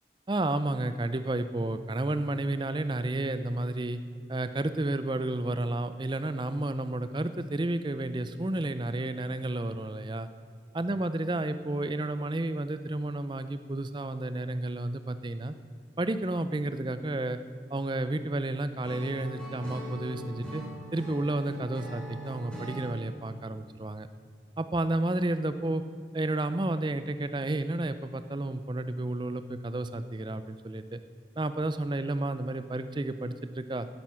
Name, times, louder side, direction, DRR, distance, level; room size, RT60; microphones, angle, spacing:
voice 1, 0.3-4.0 4.3-10.3 10.7-15.5 16.0-17.4 17.7-20.6 20.9-24.1 24.6-25.8 26.1-31.0 31.4-33.9, right 2 dB, 25° right, 11 dB, 0.5 m, -31 dB
Acoustic guitar / Strum, 18.8-22.9, right 1 dB, 5° left, 3.1 m, -41 dB
12.0 x 10.5 x 5.6 m, 2.2 s
head